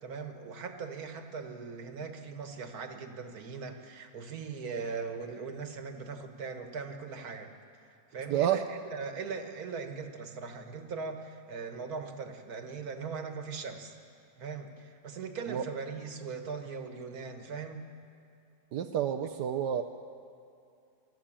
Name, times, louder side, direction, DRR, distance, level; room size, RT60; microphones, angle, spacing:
voice 1, 0.0-7.5 8.1-13.9 14.4-17.9, right 5 dB, 65° right, 6 dB, 2.0 m, -40 dB
voice 2, 8.3-8.6 15.5-15.6 18.7-19.8, right 10 dB, 85° right, 6 dB, 1.3 m, -29 dB
25.0 x 13.5 x 8.8 m, 2.6 s
omnidirectional pair, 1.7 m